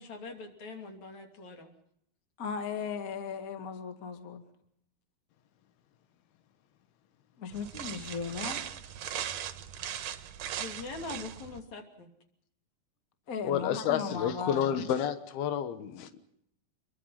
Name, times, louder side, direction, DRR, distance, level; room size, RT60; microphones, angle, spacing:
voice 1, 0.0-1.7 10.6-12.1, left 3 dB, 50° left, 5 dB, 4.0 m, -42 dB
voice 2, 2.4-4.4 7.4-8.6 13.3-14.7, left 5 dB, 30° left, 7 dB, 1.7 m, -37 dB
sound 1, 7.5-11.6, right 10 dB, 65° right, 1.9 m, -39 dB
voice 3, 13.4-16.2, left 9 dB, 90° left, 11 dB, 3.2 m, -30 dB
27.0 x 22.5 x 5.8 m, 0.73 s
omnidirectional pair, 4.3 m